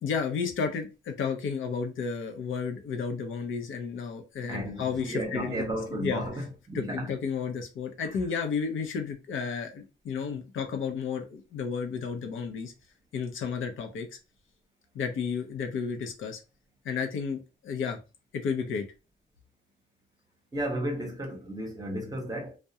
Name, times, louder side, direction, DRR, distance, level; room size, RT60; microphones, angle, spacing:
voice 1, 0.0-5.7 5.9-6.2 6.7-12.7 13.1-14.1 14.9-16.4 16.8-18.0 18.3-18.8, left 6 dB, 80° left, 0.7 m, -32 dB
voice 2, 4.5-7.1 8.0-8.2 20.5-22.6, right 1 dB, 20° right, 0.8 m, -33 dB
2.3 x 2.1 x 2.7 m
cardioid pair, 130°, 20 cm